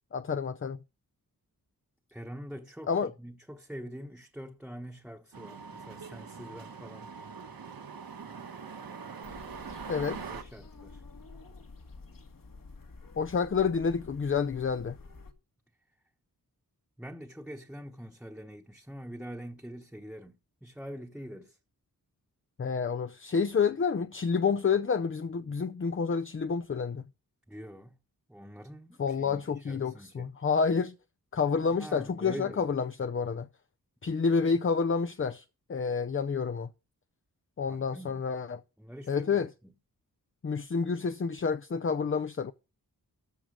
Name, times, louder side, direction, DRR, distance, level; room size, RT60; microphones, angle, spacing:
voice 1, 0.1-0.8 2.9-3.1 9.9-10.2 13.2-15.0 22.6-27.1 29.0-30.9 31.3-33.5 34.0-35.4 35.7-36.7 37.6-38.6 39.1-39.5 40.4-42.5, left 5 dB, 35° left, 0.6 m, -29 dB
voice 2, 2.1-7.1 10.2-11.0 17.0-21.6 27.5-28.0 28.3-30.3 31.7-32.7 37.7-38.2 38.8-39.4, equal, 5° right, 1.2 m, -44 dB
sound 1, 5.3-10.4, right 6 dB, 70° right, 1.5 m, -43 dB
sound 2, 9.2-15.3, left 3 dB, 65° left, 2.1 m, -50 dB
14.0 x 7.7 x 5.2 m
wide cardioid pair, 85°, 36 cm